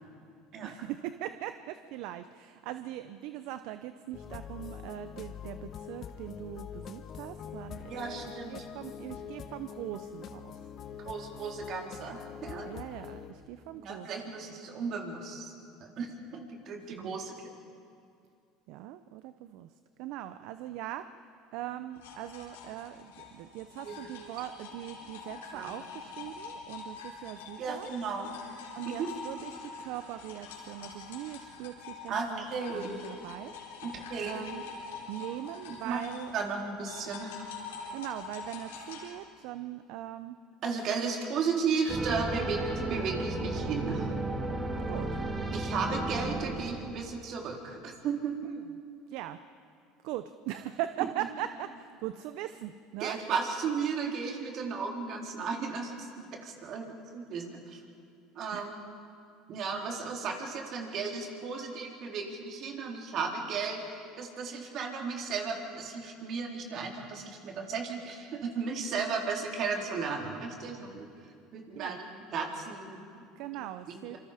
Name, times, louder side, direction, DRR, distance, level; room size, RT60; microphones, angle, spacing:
voice 1, 0.6-10.6 12.6-14.1 16.9-17.2 18.7-19.7 20.0-21.0 21.5-27.9 28.8-33.5 34.2-34.6 35.1-36.3 37.9-40.4 44.9-45.1 49.1-49.4 50.0-53.2 58.5-58.7 71.7-72.0 73.4-74.2, right 13 dB, 70° right, 11 dB, 0.7 m, -40 dB
sound 1, 4.1-13.3, left 8 dB, 45° left, 1.4 m, -44 dB
voice 2, 7.9-8.7 11.0-12.7 13.7-15.5 15.8-17.5 23.8-24.0 25.5-25.7 27.6-28.4 28.8-29.1 32.1-33.0 33.8-34.3 35.8-36.0 36.3-37.5 40.6-44.1 45.5-48.3 53.0-56.1 56.4-57.8 58.4-58.8 59.5-71.1 71.5-73.2 73.9-74.2, right 5 dB, 55° right, 1 dB, 3.9 m, -35 dB
sound 2, 21.9-32.2 32.4-39.1, left 5 dB, 90° left, 4.4 m, -45 dB
sound 3, 41.9-47.4, right 2 dB, 25° right, 2.8 m, -34 dB
26.0 x 25.5 x 5.1 m, 2.4 s
supercardioid pair, 90°, 0 cm